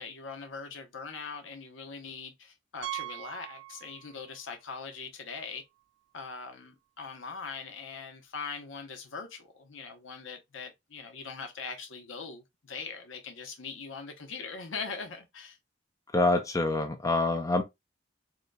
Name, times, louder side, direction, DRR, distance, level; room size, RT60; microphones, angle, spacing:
voice 1, 0.0-5.6 6.1-15.6, left 5 dB, 85° left, 0.8 m, -41 dB
Piano, 2.8-4.4 4.7-4.8 5.4-5.5 5.8-5.9 7.9-8.0, right 16 dB, 70° right, 0.4 m, -41 dB
voice 2, 16.1-17.6, left 2 dB, 15° left, 0.5 m, -26 dB
3.9 x 2.8 x 2.2 m
head